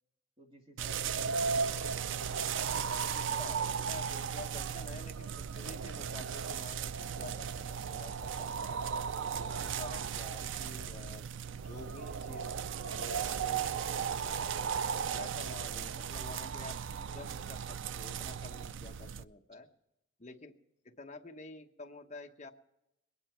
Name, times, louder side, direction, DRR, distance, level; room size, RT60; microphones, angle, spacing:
voice 1, 0.4-4.3 9.5-9.9, equal, 30° right, 0 dB, 2.6 m, -57 dB
sound 1, 0.8-19.2, right 7 dB, 75° right, 0.4 m, -36 dB
voice 2, 3.2-8.8 9.4-11.3 11.5-12.6 12.9-14.5 15.1-19.7 20.2-20.5 20.8-22.5, left 2 dB, 35° left, 3 dB, 1.1 m, -49 dB
21.5 x 9.8 x 4.5 m, 0.86 s
head